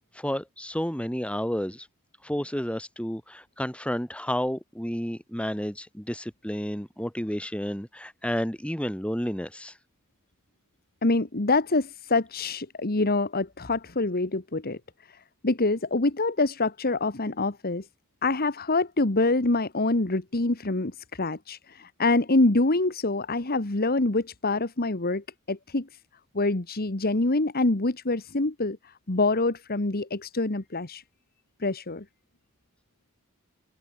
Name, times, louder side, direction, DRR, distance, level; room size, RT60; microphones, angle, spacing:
voice 1, 0.1-1.9 2.2-9.8, equal, 5° left, 3.8 m, -31 dB
voice 2, 11.0-14.8 15.4-17.8 18.2-25.9 26.3-31.0 31.6-32.0, left 2 dB, 45° left, 1.6 m, -25 dB
open air
head